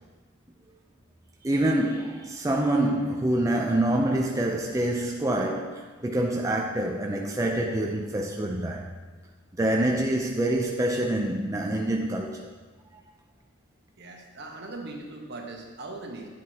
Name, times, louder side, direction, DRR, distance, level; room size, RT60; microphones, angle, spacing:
voice 1, 1.4-8.9 9.6-12.5, right 1 dB, 15° right, 0.5 m, -26 dB
voice 2, 14.0-16.3, right 2 dB, 55° right, 1.1 m, -40 dB
9.9 x 7.6 x 2.8 m
head